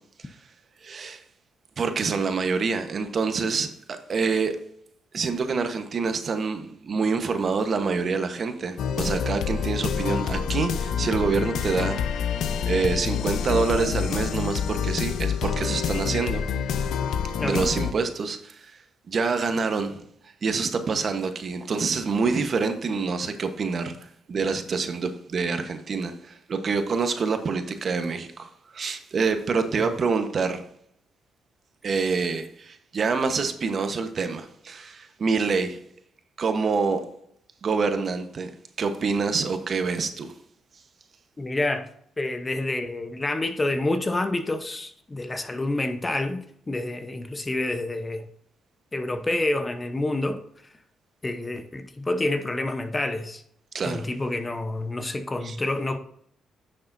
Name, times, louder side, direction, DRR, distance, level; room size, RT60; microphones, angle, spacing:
voice 1, 0.8-1.2 1.8-4.6 5.1-12.0 12.7-16.4 17.4-18.7 19.1-20.0 20.4-30.6 31.8-35.8 36.4-37.0 37.6-38.5 38.8-40.3 53.7-54.1 55.4-55.5, right 4 dB, 45° right, 1.0 m, -26 dB
sound 1, 8.8-17.9, left 7 dB, 75° left, 0.6 m, -27 dB
voice 2, 17.4-17.7 29.8-29.9 41.4-41.9 42.2-48.2 48.9-50.4 51.2-53.4 53.8-56.0, left 2 dB, 20° left, 0.8 m, -28 dB
10.0 x 6.7 x 2.6 m
cardioid pair, 90°, 0 cm